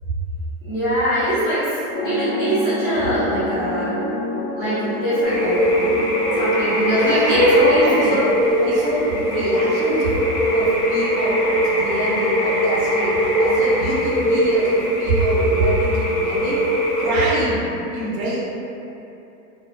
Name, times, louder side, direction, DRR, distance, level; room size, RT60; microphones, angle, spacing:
voice 1, 0.6-1.6 2.0-3.9 4.5-5.7 6.3-8.1, equal, 20° right, -16 dB, 0.8 m, -21 dB
sound 1, 1.9-15.9, left 1 dB, 80° left, 0.6 m, -31 dB
sound 2, 5.2-17.2, equal, 15° left, 0.6 m, -20 dB
voice 2, 6.5-8.3 8.6-10.1 10.5-11.4 11.6-16.6 16.9-17.6 17.9-18.4, right 1 dB, 65° right, -6 dB, 0.8 m, -26 dB
2.4 x 2.0 x 3.0 m, 2.9 s
supercardioid pair, 160°, 44 cm